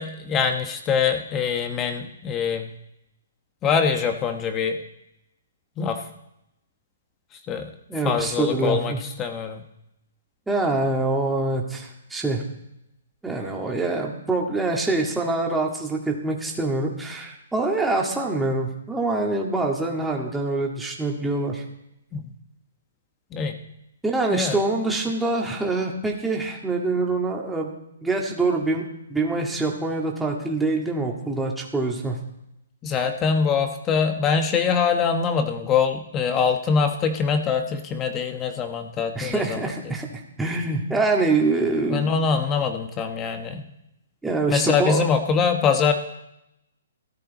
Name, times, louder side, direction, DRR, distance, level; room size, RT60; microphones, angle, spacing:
voice 1, 0.0-2.7 3.6-4.8 5.8-6.0 7.5-7.7 8.0-9.6 22.1-22.2 23.3-23.5 24.3-24.6 32.8-39.6 39.8-39.9 41.9-43.6 44.5-45.9, left 6 dB, 20° left, 6 dB, 1.1 m, -23 dB
voice 2, 7.9-9.0 10.5-12.4 13.2-21.6 24.0-27.7 28.0-28.8 29.1-32.2 39.1-40.1 40.4-42.2 44.2-45.1, right 3 dB, 5° right, -1 dB, 2.0 m, -25 dB
13.5 x 12.0 x 4.2 m, 0.83 s
hypercardioid pair, 145°, 0 cm